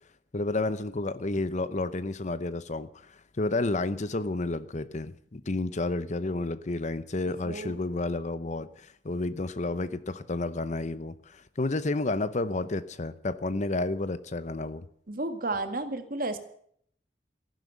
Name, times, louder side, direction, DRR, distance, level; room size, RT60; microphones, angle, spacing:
voice 1, 0.3-2.9 3.4-14.8, left 2 dB, 45° left, 15 dB, 0.8 m, -31 dB
voice 2, 7.4-7.8 15.1-16.4, right 2 dB, 55° right, 8 dB, 1.9 m, -32 dB
15.0 x 11.5 x 8.0 m, 0.65 s
head